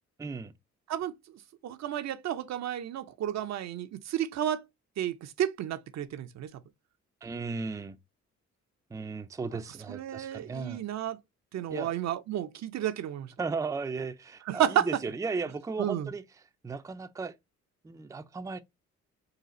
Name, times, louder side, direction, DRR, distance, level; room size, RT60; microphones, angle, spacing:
voice 1, 0.2-0.5 7.2-8.0 8.9-10.8 11.7-11.9 13.4-16.2 16.6-17.3 17.8-18.6, right 4 dB, 10° right, 0.4 m, -35 dB
voice 2, 1.6-4.6 5.0-6.5 9.5-9.6 9.9-11.2 11.5-13.3 14.5-14.9 15.8-16.1, right 10 dB, 60° right, 0.6 m, -31 dB
3.9 x 2.4 x 4.0 m
cardioid pair, 90°, 30 cm